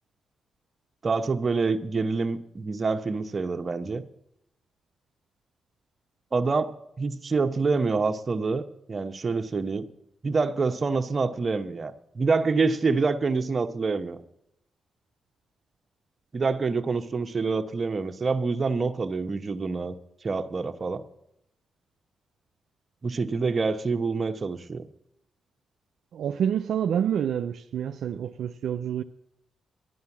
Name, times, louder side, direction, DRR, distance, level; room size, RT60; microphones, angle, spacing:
voice 1, 1.0-4.0 6.3-6.7 7.0-9.9 10.2-14.2 16.3-19.9 20.2-21.0 23.0-24.9, right 4 dB, 45° right, 1.0 m, -26 dB
voice 2, 26.1-29.0, right 9 dB, 80° right, 0.4 m, -28 dB
11.5 x 9.4 x 7.2 m
supercardioid pair, 55°, 0 cm